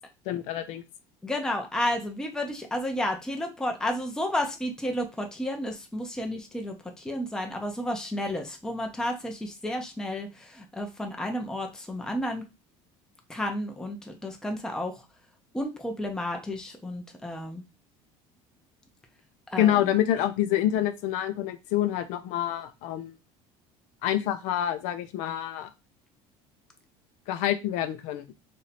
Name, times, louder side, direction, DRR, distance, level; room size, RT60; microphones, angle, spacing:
voice 1, 0.3-0.8 19.6-23.2 24.0-25.7 27.3-28.2, left 12 dB, 75° left, 9 dB, 0.6 m, -27 dB
voice 2, 1.2-12.4 13.3-14.9 15.5-17.6 19.5-19.9, left 1 dB, 5° left, 3 dB, 0.6 m, -32 dB
3.2 x 2.7 x 4.1 m, 0.25 s
cardioid pair, 130°, 13 cm